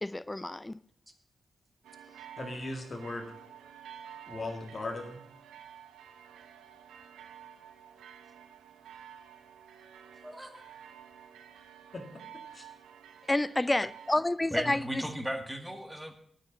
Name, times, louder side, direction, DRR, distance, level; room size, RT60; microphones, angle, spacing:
voice 1, 0.0-0.8 13.3-15.0, left 2 dB, 20° left, 0.5 m, -29 dB
sound 1, 1.8-14.2, right 9 dB, 90° right, 0.9 m, -51 dB
voice 2, 2.4-3.3 4.3-5.2 11.9-12.0 12.5-12.6, left 2 dB, 50° left, 2.2 m, -38 dB
voice 3, 10.2-10.7 14.5-16.1, equal, 10° right, 1.9 m, -36 dB
9.1 x 6.7 x 8.3 m
supercardioid pair, 40°, 0 cm